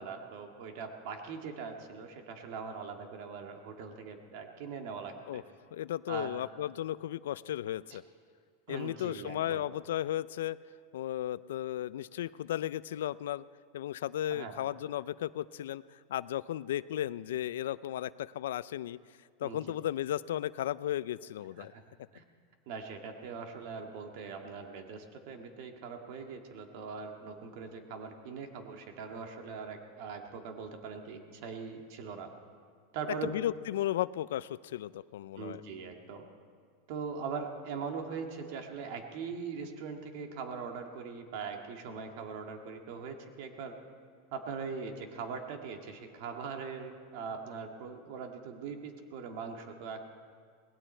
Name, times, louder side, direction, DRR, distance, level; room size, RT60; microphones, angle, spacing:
voice 1, 0.0-5.4 6.1-6.4 7.9-8.0 8.7-9.7 14.3-14.6 19.4-19.6 21.6-21.8 22.1-22.2 22.7-32.3 32.9-33.3 35.4-36.2 36.9-43.7 44.3-50.0, right 5 dB, 60° right, 4 dB, 1.9 m, -41 dB
voice 2, 5.7-8.0 8.7-10.6 10.9-13.4 13.7-19.0 19.4-21.7 33.2-35.6, left 12 dB, 85° left, 18 dB, 0.4 m, -35 dB
19.0 x 16.5 x 4.4 m, 2.1 s
supercardioid pair, 135°, 0 cm